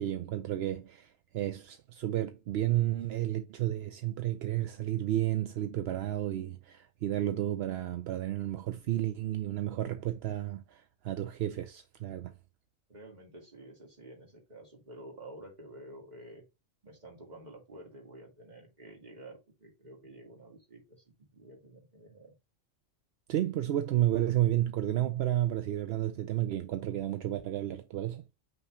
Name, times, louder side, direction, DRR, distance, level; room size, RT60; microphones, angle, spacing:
voice 1, 0.0-12.3 23.3-28.2, right 13 dB, 60° right, 0.7 m, -32 dB
voice 2, 12.9-16.4 16.8-22.3, right 1 dB, 30° right, 2.2 m, -50 dB
5.7 x 3.1 x 5.6 m
omnidirectional pair, 1.4 m